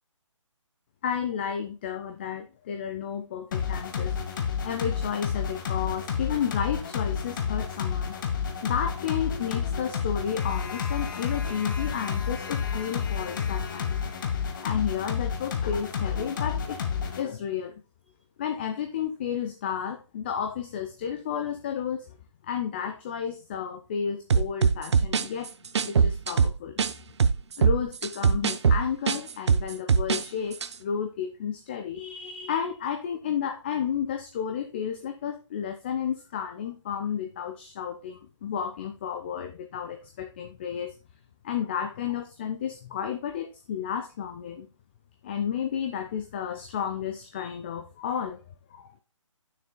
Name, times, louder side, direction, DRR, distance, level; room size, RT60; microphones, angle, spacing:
voice 1, 1.0-8.2 8.6-14.0 14.6-16.8 17.2-17.8 18.4-22.1 22.4-25.5 25.8-26.8 27.6-40.9 41.4-44.7 45.2-48.4 48.7-48.9, left 8 dB, 20° left, 6 dB, 0.4 m, -32 dB
sound 1, 3.5-17.2, left 7 dB, 40° left, 1.1 m, -30 dB
sound 2, 24.3-26.9 27.2-30.2 30.5-30.7, right 6 dB, 60° right, 0.6 m, -22 dB
9.2 x 6.5 x 2.2 m, 0.30 s
figure-of-eight pair, 155°, 17 cm